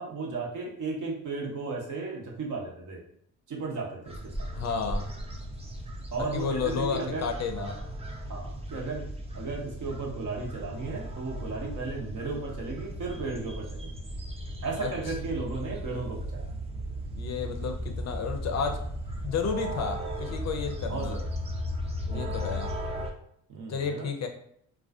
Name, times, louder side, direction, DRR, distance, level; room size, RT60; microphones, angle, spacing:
voice 1, 0.0-3.0 3.5-4.3 6.1-7.3 7.6-7.8 8.3-9.0 9.3-13.9 14.6-16.5 20.9-21.2 22.0-22.4 23.5-24.1, right 3 dB, 55° right, -1 dB, 0.8 m, -35 dB
sound 1, 4.0-23.1, equal, 20° right, 0.4 m, -36 dB
voice 2, 4.5-5.1 6.2-7.8 14.8-15.1 17.2-18.8 19.2-21.2 22.1-22.7 23.7-24.3, left 6 dB, 50° left, 5 dB, 0.5 m, -32 dB
2.3 x 2.2 x 2.4 m, 0.66 s
supercardioid pair, 70°, 36 cm